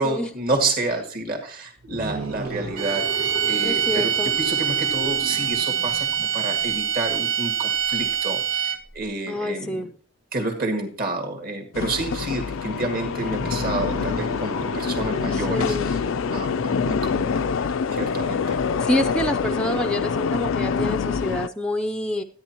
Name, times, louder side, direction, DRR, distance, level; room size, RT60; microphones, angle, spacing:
voice 1, 0.0-3.1 3.4-9.9 10.3-15.8 16.3-17.4 17.9-18.6, right 2 dB, 45° right, 3 dB, 2.0 m, -29 dB
sound 1, 1.8-6.9 13.2-18.9, right 3 dB, 85° right, 1.8 m, -36 dB
sound 2, 2.8-9.0, right 9 dB, 65° right, 0.9 m, -24 dB
voice 2, 3.6-4.3 9.3-9.9 15.3-15.9 18.8-22.2, equal, 5° left, 6 dB, 0.5 m, -27 dB
sound 3, 11.7-21.5, left 6 dB, 70° left, 0.4 m, -25 dB
13.0 x 9.6 x 2.9 m, 0.42 s
head